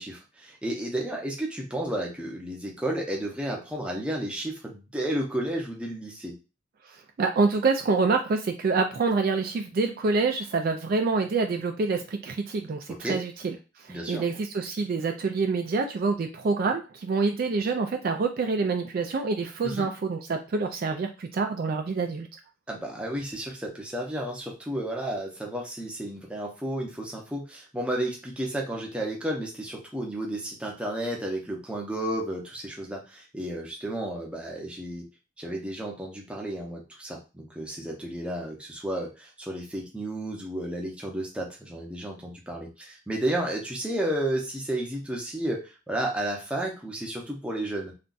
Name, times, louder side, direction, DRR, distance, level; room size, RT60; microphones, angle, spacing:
voice 1, 0.0-6.3 12.9-13.2 13.9-14.2 19.6-19.9 22.7-35.0 35.4-47.9, right 1 dB, 5° right, -1 dB, 0.7 m, -32 dB
voice 2, 6.9-22.3, right 4 dB, 45° right, 4 dB, 0.3 m, -27 dB
2.5 x 2.2 x 3.8 m, 0.30 s
head